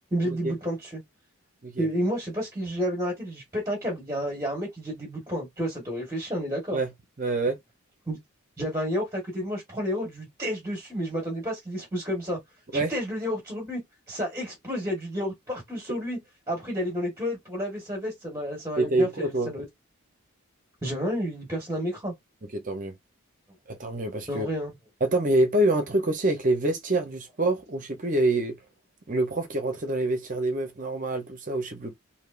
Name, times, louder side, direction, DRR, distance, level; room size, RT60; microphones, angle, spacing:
voice 1, 0.1-1.0 1.8-6.8 8.1-8.2 8.6-12.4 12.7-13.8 14.1-16.2 16.5-19.6 20.8-22.1 24.3-24.7, equal, 15° right, 1.3 m, -30 dB
voice 2, 7.2-7.6 12.7-12.9 18.8-19.5 22.5-22.9 23.7-24.5 25.0-28.6 29.1-31.9, right 2 dB, 35° right, 0.7 m, -26 dB
3.3 x 2.7 x 2.5 m
head